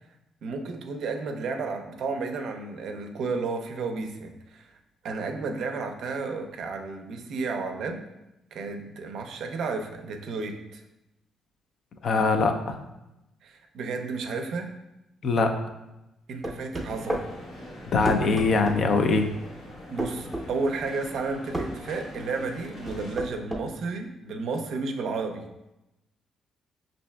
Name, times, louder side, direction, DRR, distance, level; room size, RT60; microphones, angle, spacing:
voice 1, 0.4-4.7 5.0-8.0 8.5-10.8 13.4-14.7 16.3-17.2 19.9-25.4, right 4 dB, 70° right, 4 dB, 0.4 m, -32 dB
voice 2, 12.0-12.8 15.2-15.5 17.9-19.3, left 4 dB, 60° left, 6 dB, 0.4 m, -22 dB
sound 1, 16.4-17.3 18.0-18.8 20.0-20.5 21.5-21.7 22.9-23.7, right 1 dB, 5° right, 0.6 m, -31 dB
Crowd Medium Tradeshow Large Venue, 16.9-23.2, left 1 dB, 75° left, 1.1 m, -43 dB
5.4 x 2.5 x 2.2 m, 0.94 s
cardioid pair, 90°, 0 cm